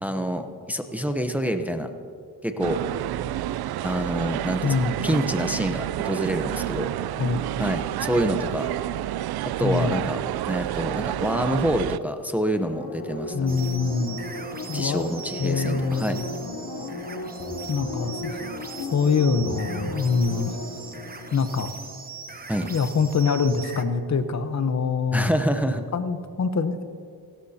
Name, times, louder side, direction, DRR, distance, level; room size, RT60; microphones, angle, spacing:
voice 1, 0.0-1.9 2.4-2.8 3.8-4.8 5.0-6.9 7.6-8.7 9.6-10.2 10.5-13.5 14.7-16.2 22.5-22.7 25.1-25.8, equal, 5° right, 6 dB, 0.8 m, -26 dB
sound 1, 2.6-12.0, right 13 dB, 70° right, 0.5 m, -29 dB
voice 2, 4.6-5.0 7.2-7.4 9.6-10.1 13.3-14.2 14.7-15.1 15.4-16.2 17.7-18.4 18.9-20.6 21.3-21.7 22.7-25.3 25.9-26.8, left 5 dB, 45° left, 10 dB, 1.0 m, -24 dB
sound 2, 12.6-22.0 22.4-22.5, left 2 dB, 80° left, 3.8 m, -35 dB
sound 3, 13.5-23.8, right 5 dB, 25° right, 1.1 m, -41 dB
29.5 x 13.0 x 2.9 m, 2.2 s
cardioid pair, 95°, 39 cm